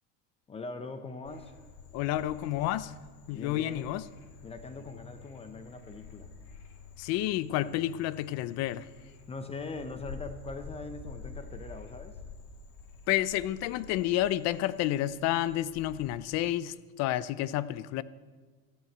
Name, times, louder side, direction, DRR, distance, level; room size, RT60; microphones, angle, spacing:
voice 1, 0.5-1.5 3.3-4.0 4.4-6.3 9.3-12.2, left 3 dB, 20° left, 0.8 m, -41 dB
Frog, 1.2-16.1, left 4 dB, 70° left, 3.0 m, -49 dB
voice 2, 1.9-2.9 3.3-4.1 7.0-8.9 13.1-18.0, left 14 dB, 50° left, 0.6 m, -30 dB
14.0 x 11.0 x 7.9 m
cardioid pair, 155°, 33 cm